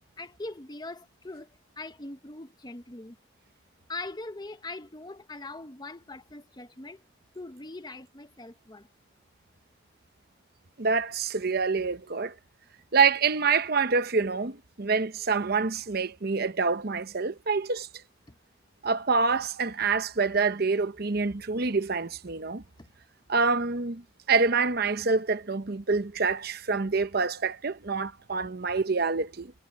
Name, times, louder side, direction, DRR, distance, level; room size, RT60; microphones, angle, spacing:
voice 1, 0.2-3.2 3.9-7.0 7.3-8.9 18.3-18.4 22.8-22.9, left 2 dB, 20° left, 0.9 m, -41 dB
voice 2, 10.8-12.3 12.9-17.9 18.8-22.6 23.3-24.0 24.3-29.5, right 4 dB, 55° right, 0.9 m, -26 dB
head